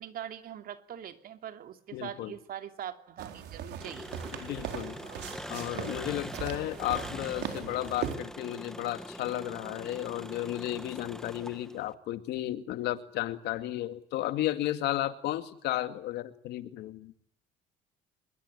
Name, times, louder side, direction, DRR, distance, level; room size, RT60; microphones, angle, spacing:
voice 1, 0.0-4.9, right 10 dB, 60° right, 8 dB, 3.0 m, -43 dB
voice 2, 1.9-2.3 4.3-5.0 5.5-17.1, left 14 dB, 80° left, 10 dB, 2.3 m, -33 dB
sound 1, 3.2-8.2, right 9 dB, 80° right, 4.1 m, -39 dB
Engine, 3.8-11.9, equal, 5° left, 1.8 m, -43 dB
26.0 x 22.5 x 9.9 m, 0.64 s
cardioid pair, 110°, 17 cm